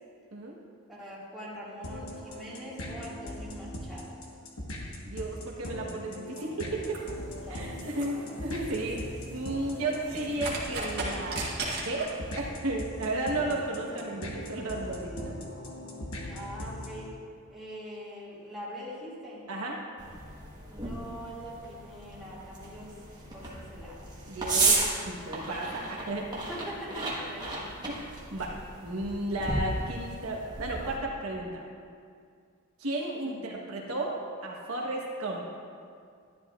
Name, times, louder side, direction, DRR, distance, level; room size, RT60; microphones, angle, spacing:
voice 1, 0.9-4.2 7.4-8.4 16.3-17.1 17.5-19.5 20.7-24.0 26.5-27.5 33.2-33.6, equal, ahead, -10 dB, 2.1 m, -43 dB
sound 1, 1.8-17.1, left 1 dB, 75° left, 1.3 m, -40 dB
voice 2, 5.0-7.0 7.5-15.4 19.5-19.7 24.3-26.3 27.9-28.1 28.3-28.5 28.8-31.6 32.8-35.4, right 2 dB, 75° right, -2 dB, 1.2 m, -34 dB
sound 2, 6.7-12.4, right 2 dB, 45° right, 1.7 m, -38 dB
sound 3, 20.0-31.0, right 3 dB, 20° right, 1.3 m, -34 dB
12.0 x 10.5 x 2.4 m, 2.2 s
head